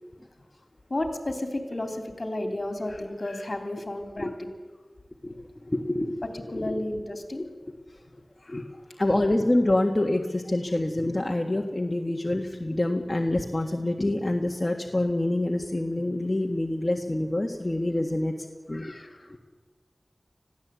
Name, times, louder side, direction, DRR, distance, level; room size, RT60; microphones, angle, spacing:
voice 1, 0.9-4.3 6.3-7.5 8.4-9.0 18.7-19.3, left 1 dB, 55° left, 6 dB, 3.2 m, -33 dB
voice 2, 5.2-6.2 6.5-6.8 7.4-7.5 8.5-8.6 9.0-18.3 18.7-18.9 19.3-19.4, left 1 dB, 30° left, 2 dB, 1.6 m, -26 dB
20.5 x 15.5 x 8.3 m, 1.4 s
wide cardioid pair, 50°, 0 cm